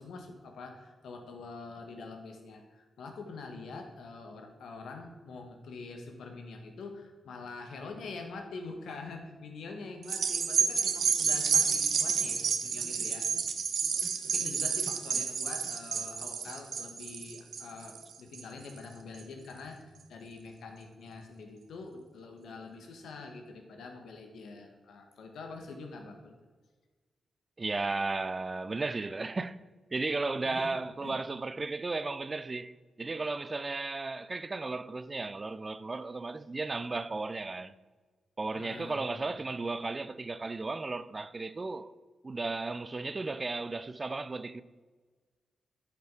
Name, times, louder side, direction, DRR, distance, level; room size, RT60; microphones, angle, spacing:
voice 1, 0.0-13.3 14.2-26.3 30.4-31.2 38.5-39.3, left 3 dB, 80° left, 1.4 m, -45 dB
sound 1, 10.0-18.7 19.2-19.3, right 6 dB, 70° right, 0.8 m, -30 dB
voice 2, 27.6-29.6 29.9-37.7 38.4-41.9 42.2-44.6, right 3 dB, 35° right, 0.5 m, -35 dB
10.5 x 5.9 x 4.8 m
supercardioid pair, 50°, 0 cm